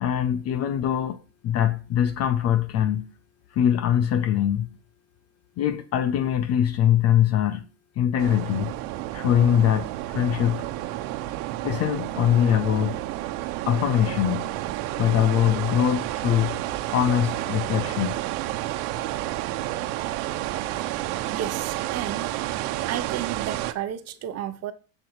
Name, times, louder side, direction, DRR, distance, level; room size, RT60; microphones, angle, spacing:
voice 1, 0.0-3.1 3.5-4.7 5.6-7.6 8.0-8.8 9.1-10.6 11.6-13.0 13.6-14.5 15.0-16.6 16.8-18.2, left 10 dB, 35° left, 0.5 m, -23 dB
sound 1, 8.2-23.7, right 15 dB, 85° right, 1.2 m, -30 dB
voice 2, 20.7-22.3 22.8-24.7, right 10 dB, 30° right, 0.9 m, -33 dB
10.5 x 8.0 x 4.8 m
cardioid pair, 170°, 48 cm